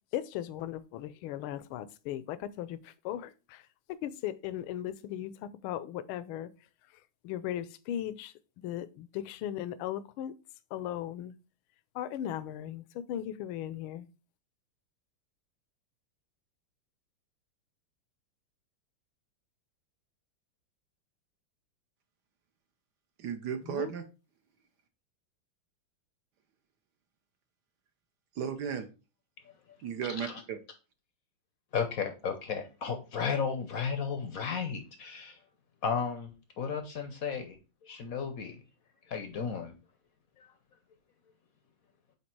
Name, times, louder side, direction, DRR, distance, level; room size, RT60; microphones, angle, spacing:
voice 1, 0.1-6.5 7.2-8.3 8.6-10.3 10.7-11.3 11.9-14.1 23.6-23.9, left 11 dB, 80° left, 1.4 m, -37 dB
voice 2, 23.2-24.0 28.3-28.9 29.8-30.6, right 8 dB, 65° right, 1.1 m, -35 dB
voice 3, 30.1-30.4 31.7-35.4 35.8-36.3 36.6-38.6 39.1-39.7 40.4-40.5, left 6 dB, 65° left, 0.9 m, -34 dB
8.2 x 2.8 x 4.4 m
omnidirectional pair, 2.4 m